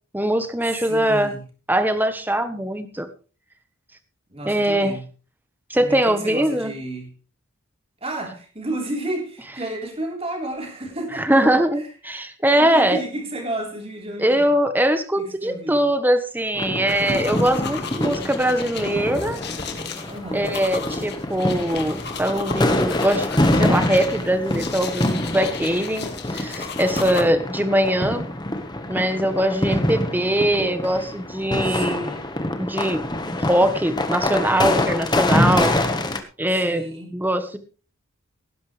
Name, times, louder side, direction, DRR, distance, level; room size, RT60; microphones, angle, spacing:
voice 1, 0.1-1.3 1.7-3.1 4.4-5.0 5.7-6.7 11.1-13.0 14.2-19.4 20.3-23.3 23.6-28.2 28.9-32.1 32.6-33.0 33.3-35.7 36.4-36.9 37.1-37.6, right 1 dB, 10° right, 1.2 m, -21 dB
voice 2, 0.7-1.4 4.3-5.0 5.8-7.1 8.0-11.4 12.5-14.5 15.2-15.8 20.1-20.6 27.0-27.3 31.6-32.2 36.5-37.1, right 1 dB, 30° right, 3.7 m, -32 dB
sound 1, 16.6-36.2, left 1 dB, 20° left, 1.3 m, -25 dB
sound 2, 16.9-27.2, left 6 dB, 50° left, 2.0 m, -35 dB
18.0 x 10.5 x 3.3 m
head